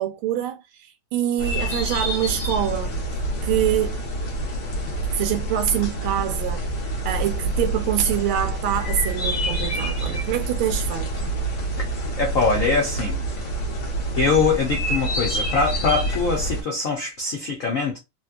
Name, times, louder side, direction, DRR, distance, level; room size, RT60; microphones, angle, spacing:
voice 1, 0.0-3.0 3.4-4.0 5.1-6.7 7.0-11.4, right 11 dB, 85° right, 1.4 m, -25 dB
sound 1, 1.4-16.6, right 1 dB, 55° left, 1.8 m, -27 dB
voice 2, 12.2-13.2 14.2-18.0, left 4 dB, 70° left, 0.7 m, -23 dB
4.1 x 2.2 x 2.4 m
omnidirectional pair, 2.3 m